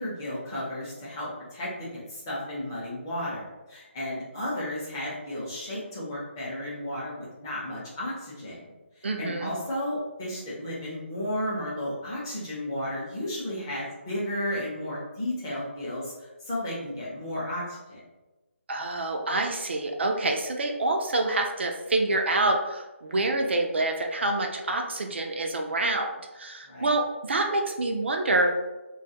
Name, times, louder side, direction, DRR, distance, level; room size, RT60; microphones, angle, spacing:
voice 1, 0.0-8.6 9.0-18.0 26.7-26.9, left 1 dB, 15° left, -7 dB, 0.6 m, -33 dB
voice 2, 9.0-9.5 18.7-26.1 26.4-28.5, right 2 dB, 60° right, 3 dB, 0.4 m, -27 dB
2.3 x 2.1 x 2.7 m, 1.1 s
hypercardioid pair, 170°, 7 cm